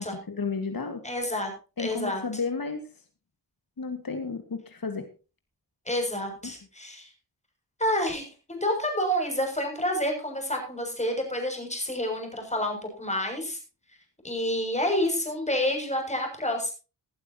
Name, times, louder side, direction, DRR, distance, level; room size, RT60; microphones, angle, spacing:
voice 1, 0.3-1.0 1.8-2.8 3.8-5.1 6.4-6.5, left 4 dB, 55° left, 6 dB, 2.3 m, -32 dB
voice 2, 1.0-1.5 1.8-2.2 5.9-7.1 7.8-13.6 14.2-16.7, left 1 dB, 15° left, 3 dB, 7.1 m, -29 dB
19.5 x 12.0 x 2.9 m, 0.33 s
wide cardioid pair, 70°, 41 cm